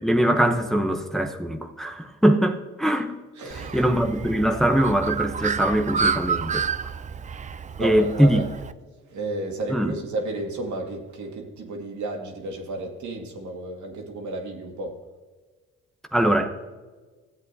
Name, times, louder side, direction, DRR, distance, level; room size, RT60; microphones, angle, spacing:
voice 1, 0.0-3.1 3.5-6.7 7.8-8.4 9.7-9.9 16.1-16.6, right 1 dB, ahead, 4 dB, 0.8 m, -22 dB
voice 2, 3.4-3.9 7.8-8.5 9.1-15.0, right 2 dB, 75° right, 1 dB, 2.1 m, -32 dB
Bird, 3.5-8.7, right 6 dB, 25° right, 0.4 m, -29 dB
15.0 x 8.3 x 2.7 m, 1.3 s
cardioid pair, 90°, 30 cm